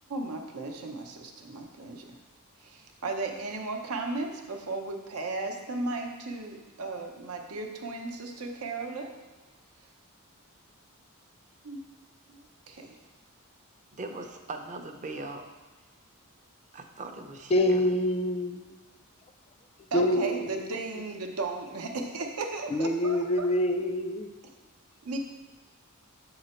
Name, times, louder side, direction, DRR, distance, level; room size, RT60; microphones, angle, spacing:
voice 1, 0.1-2.2 2.6-9.1 11.6-11.8 12.3-13.0 19.9-23.2 25.0-25.2, right 3 dB, 80° right, 3 dB, 0.8 m, -35 dB
voice 2, 13.9-15.4 16.7-17.8, right 2 dB, 35° right, 5 dB, 0.5 m, -40 dB
voice 3, 17.5-18.9 19.9-20.7 22.7-24.3, left 1 dB, 30° left, 6 dB, 0.4 m, -26 dB
6.8 x 3.9 x 4.4 m, 1.2 s
head